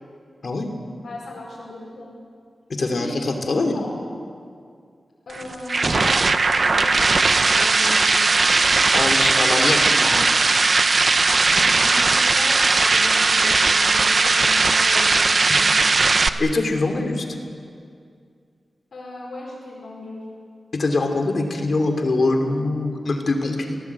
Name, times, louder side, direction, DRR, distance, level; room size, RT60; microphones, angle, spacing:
voice 1, 1.0-2.1 2.9-4.0 5.3-6.3 6.6-8.5 11.5-15.9 18.9-20.2, left 2 dB, 70° left, -6 dB, 5.1 m, -36 dB
voice 2, 2.8-3.7 8.9-10.3 16.4-17.3 20.7-23.8, left 2 dB, 50° left, 4 dB, 2.9 m, -23 dB
sound 1, 5.3-16.3, right 3 dB, 45° right, 0.8 m, -18 dB
26.5 x 18.5 x 8.4 m, 2.3 s
wide cardioid pair, 150°, 0 cm